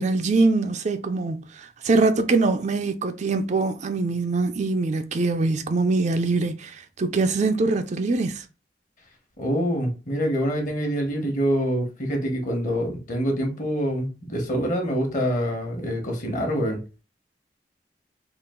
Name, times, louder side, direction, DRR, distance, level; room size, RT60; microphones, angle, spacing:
voice 1, 0.0-8.4, right 3 dB, 40° right, 0.4 m, -23 dB
voice 2, 9.4-16.8, equal, 45° left, 1.2 m, -25 dB
3.7 x 2.4 x 3.6 m
head